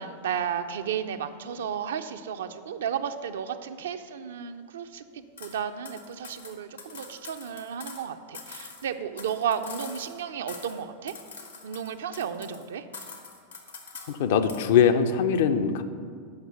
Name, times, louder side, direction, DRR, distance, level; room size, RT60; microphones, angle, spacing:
voice 1, 0.0-11.1 11.6-12.9, right 8 dB, 60° right, 8 dB, 0.4 m, -33 dB
sound 1, 5.4-5.6 5.8-8.1 8.3-10.2 10.5-10.8 11.1-12.6 12.9-14.2 14.5-14.7, left 4 dB, 70° left, 1.2 m, -44 dB
voice 2, 14.1-15.8, left 7 dB, 55° left, 9 dB, 0.6 m, -22 dB
8.0 x 6.0 x 6.8 m, 2.1 s
figure-of-eight pair, 90°, 0 cm